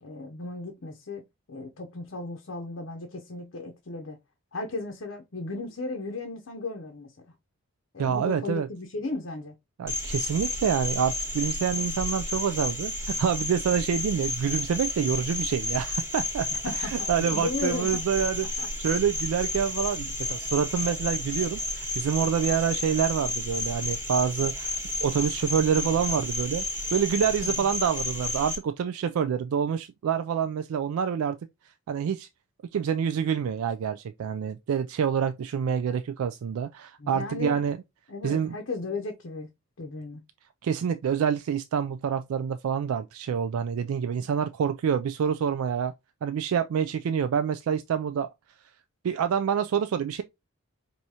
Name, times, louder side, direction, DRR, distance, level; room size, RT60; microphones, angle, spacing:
voice 1, 0.0-4.2 4.5-7.1 7.9-9.5 16.5-18.0 18.6-18.7 27.4-27.7 37.0-37.7 38.1-39.5 39.8-40.2, left 3 dB, 60° left, 0.6 m, -35 dB
voice 2, 8.0-8.7 9.8-16.5 16.8-26.6 26.9-31.4 31.9-32.3 32.7-37.8 38.2-38.6 40.6-45.9 46.2-48.3 49.0-50.2, right 7 dB, 80° right, 0.3 m, -27 dB
Cricket, 9.9-28.6, left 2 dB, 10° right, 1.1 m, -32 dB
4.7 x 2.7 x 2.7 m
head